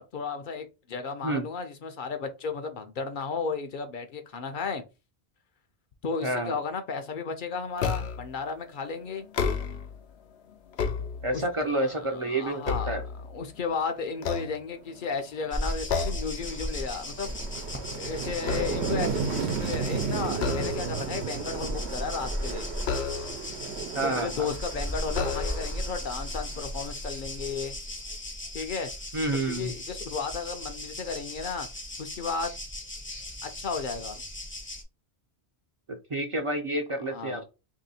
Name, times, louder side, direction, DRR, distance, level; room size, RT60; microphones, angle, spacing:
voice 1, 0.0-4.8 6.0-9.3 11.3-12.9 13.2-17.4 17.9-22.7 24.0-27.7 28.5-28.9 29.4-31.7 32.0-32.5 33.4-34.2 37.1-37.4, left 5 dB, 60° left, 0.7 m, -34 dB
voice 2, 6.2-6.5 11.2-13.0 23.9-24.5 29.1-29.7 35.9-37.4, right 2 dB, 40° right, 0.5 m, -29 dB
sound 1, 7.8-8.4 9.2-10.0 10.5-11.6 12.1-13.6 14.1-15.1 15.9-16.4 16.8-17.0 17.4-19.1 20.3-21.1 22.8-23.6 24.4-24.5 25.1-25.9, left 5 dB, 85° left, 0.9 m, -32 dB
sound 2, 15.5-34.8, left 1 dB, 15° left, 0.5 m, -37 dB
sound 3, 15.5-15.6 16.0-26.8, right 6 dB, 85° right, 1.0 m, -34 dB
2.9 x 2.8 x 4.1 m
omnidirectional pair, 1.1 m